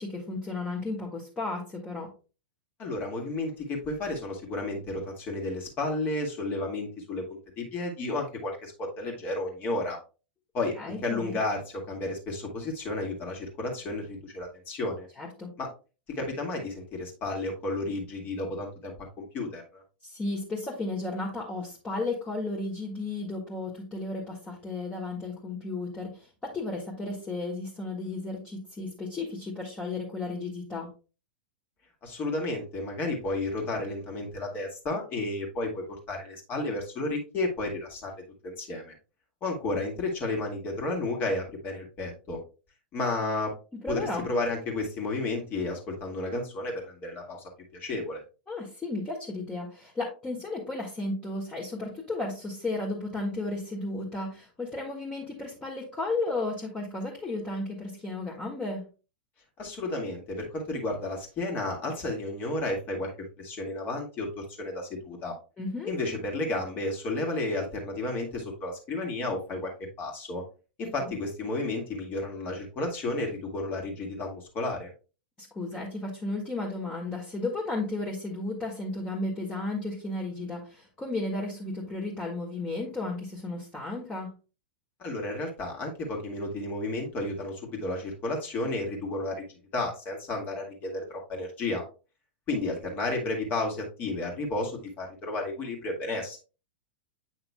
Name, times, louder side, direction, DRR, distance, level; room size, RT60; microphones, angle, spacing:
voice 1, 0.0-2.1 10.8-11.5 15.2-15.5 20.0-30.9 43.8-44.2 48.5-58.8 65.6-65.9 71.0-71.1 75.4-84.3, left 2 dB, 15° left, -3 dB, 1.5 m, -34 dB
voice 2, 2.8-10.0 10.5-11.6 11.9-15.1 15.6-15.7 16.1-19.8 32.0-38.9 39.4-42.4 42.9-43.5 43.9-48.2 59.6-63.1 63.4-65.4 65.9-69.7 70.0-70.4 70.8-74.9 85.0-91.8 92.5-96.4, left 2 dB, 35° left, 1 dB, 1.9 m, -32 dB
8.1 x 5.7 x 2.2 m, 0.33 s
figure-of-eight pair, 100°, 6 cm